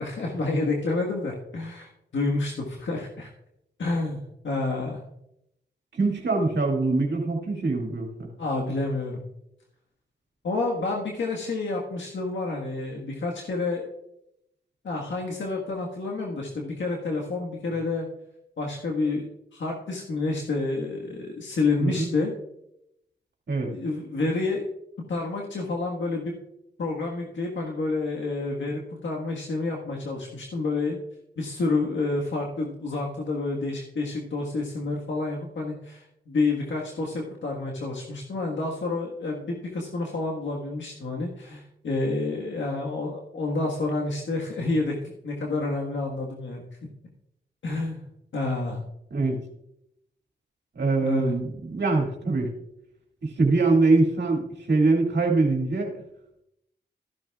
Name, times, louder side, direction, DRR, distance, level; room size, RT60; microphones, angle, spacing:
voice 1, 0.0-3.3 3.8-5.0 8.4-9.2 10.4-13.9 14.8-18.1 18.6-19.3 19.5-22.3 23.7-24.7 25.1-26.3 26.8-31.0 31.4-45.0 45.2-46.6 47.6-48.0 48.3-48.8 51.0-51.3, left 3 dB, 75° left, -1 dB, 1.6 m, -29 dB
voice 2, 5.9-8.3 21.8-22.1 23.5-23.7 49.1-49.4 50.7-52.5 53.2-55.9, right 3 dB, 65° right, 1 dB, 2.3 m, -23 dB
14.0 x 10.5 x 2.4 m, 0.80 s
cardioid pair, 50°, 19 cm